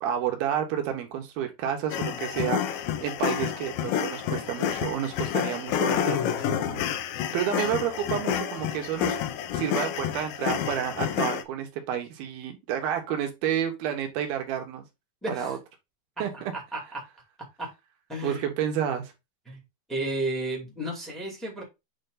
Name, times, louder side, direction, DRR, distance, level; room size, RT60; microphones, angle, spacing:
voice 1, 0.0-6.8 7.1-9.2 9.5-14.9 15.3-15.6 16.2-16.5 18.2-19.1, right 9 dB, 75° right, 3.0 m, -30 dB
sound 1, 1.9-11.4, left 9 dB, 80° left, 2.2 m, -29 dB
voice 2, 15.2-15.6 16.3-17.0 17.6-17.7 18.1-18.5 19.5-19.6 19.9-21.6, right 1 dB, ahead, 1.2 m, -33 dB
8.1 x 3.2 x 3.9 m
omnidirectional pair, 4.6 m